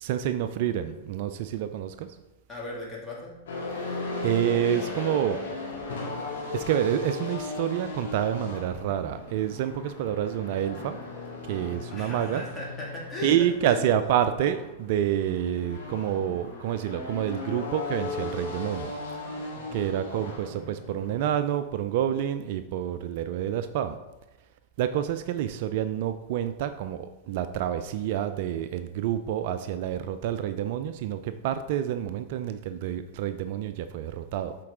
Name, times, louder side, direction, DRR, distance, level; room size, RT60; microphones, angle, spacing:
voice 1, 0.0-2.1 3.8-5.4 6.5-11.0 11.5-12.5 13.2-18.9 19.7-24.0 24.8-34.6, right 10 dB, 55° right, 10 dB, 0.3 m, -28 dB
voice 2, 2.5-3.3 11.9-13.3 13.6-13.8 19.5-19.8, left 2 dB, 15° left, -4 dB, 2.2 m, -37 dB
sound 1, 3.5-21.3, left 3 dB, 70° left, 1.9 m, -37 dB
7.5 x 4.5 x 3.7 m, 1.0 s
figure-of-eight pair, 100°, 0 cm